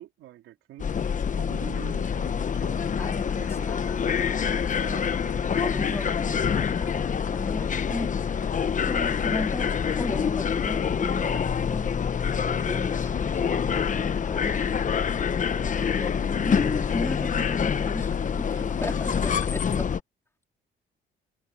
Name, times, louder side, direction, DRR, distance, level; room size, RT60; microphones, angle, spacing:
voice 1, 0.0-3.7 4.8-5.4 18.5-18.6, right 13 dB, 90° right, 3.7 m, -47 dB
sound 1, 0.8-20.0, left 7 dB, 40° left, 1.0 m, -26 dB
voice 2, 3.0-4.8 5.6-8.6 8.9-11.9 12.4-14.7 15.6-18.5 18.8-19.9, left 2 dB, 15° left, 4.0 m, -36 dB
cardioid pair, 90°, 20 cm